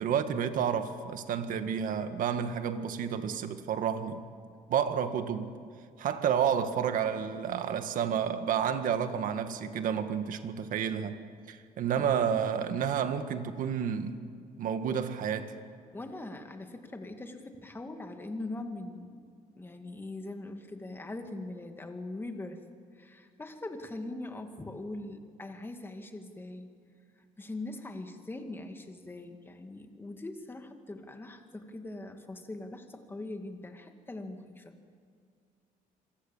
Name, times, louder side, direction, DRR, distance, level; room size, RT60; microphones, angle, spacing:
voice 1, 0.0-4.2 4.7-5.5 6.0-11.2 11.5-14.2 14.6-15.5, right 8 dB, 65° right, 1.8 m, -30 dB
voice 2, 15.9-22.6 22.9-26.7 27.4-34.8, left 2 dB, 15° left, 2.3 m, -41 dB
26.5 x 24.0 x 7.4 m
cardioid pair, 130°, 15 cm